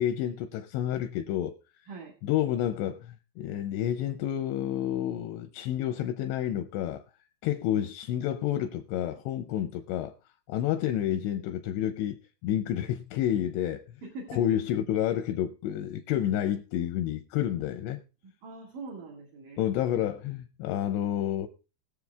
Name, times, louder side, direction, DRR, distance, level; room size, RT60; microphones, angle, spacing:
voice 1, 0.0-1.5 2.2-7.0 7.4-10.1 10.5-13.8 14.3-18.0 19.6-21.5, left 11 dB, 80° left, 2.6 m, -29 dB
voice 2, 14.0-14.6 18.4-19.6, right 3 dB, 55° right, 2.8 m, -42 dB
21.5 x 7.4 x 2.3 m
omnidirectional pair, 5.4 m